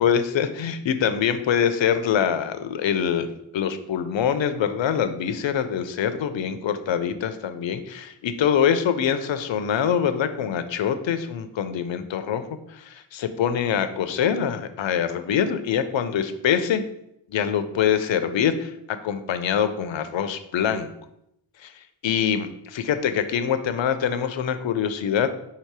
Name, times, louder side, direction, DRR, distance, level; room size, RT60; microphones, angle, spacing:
voice 1, 0.0-3.3 3.5-16.8 17.3-20.9 21.6-21.7 22.0-25.3, left 8 dB, 65° left, 10 dB, 0.5 m, -24 dB
4.1 x 2.8 x 4.6 m, 0.80 s
wide cardioid pair, 90°, 49 cm